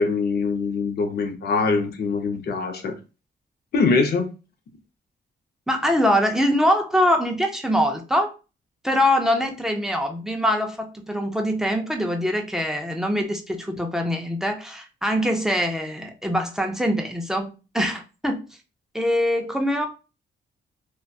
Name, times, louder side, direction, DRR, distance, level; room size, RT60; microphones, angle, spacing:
voice 1, 0.0-2.9 3.7-4.3, left 4 dB, 55° left, 5 dB, 0.5 m, -23 dB
voice 2, 5.7-8.3 8.8-18.5 18.9-19.9, equal, 5° right, 4 dB, 0.3 m, -23 dB
2.6 x 2.2 x 2.3 m, 0.31 s
wide cardioid pair, 150°, 19 cm